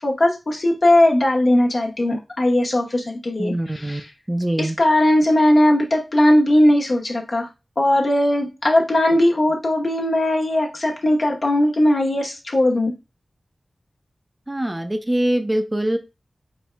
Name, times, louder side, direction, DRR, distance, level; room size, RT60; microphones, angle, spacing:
voice 1, 0.0-4.1 4.6-7.5 7.8-12.9, left 1 dB, 60° left, 0 dB, 1.0 m, -18 dB
voice 2, 3.4-4.0 4.3-4.8 14.5-16.0, right 1 dB, 20° right, 7 dB, 0.5 m, -23 dB
4.4 x 3.3 x 2.2 m, 0.26 s
cardioid pair, 45°, 0 cm